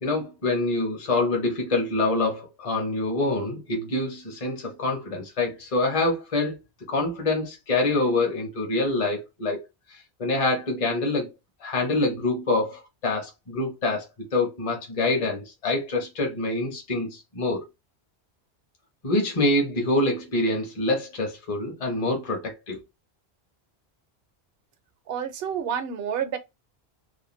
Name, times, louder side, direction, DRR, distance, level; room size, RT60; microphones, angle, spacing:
voice 1, 0.0-6.6 6.9-9.6 9.9-11.3 11.6-17.6 19.0-22.8, left 2 dB, 35° left, 0.7 m, -26 dB
voice 2, 25.1-26.4, right 8 dB, 70° right, 0.8 m, -29 dB
2.5 x 2.1 x 3.0 m
omnidirectional pair, 1.1 m